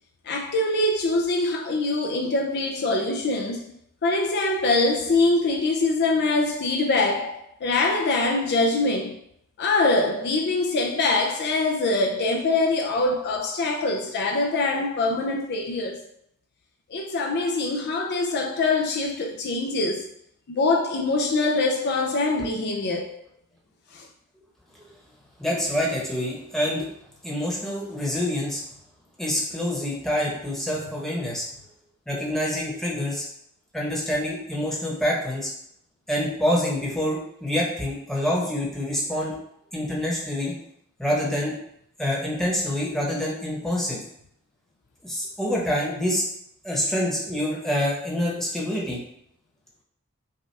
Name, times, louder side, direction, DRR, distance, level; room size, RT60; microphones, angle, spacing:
voice 1, 0.2-3.6 4.0-9.2 9.6-16.0 16.9-20.1 20.5-23.2 23.9-24.1, left 2 dB, 50° left, 0.4 m, -24 dB
voice 2, 25.4-26.9 27.2-28.6 29.2-31.4 32.1-33.2 33.7-35.5 36.1-39.4 39.7-40.5 41.0-41.6 42.0-44.0 45.0-46.2 46.6-49.0, left 1 dB, ahead, 1.0 m, -26 dB
5.5 x 2.4 x 3.3 m
head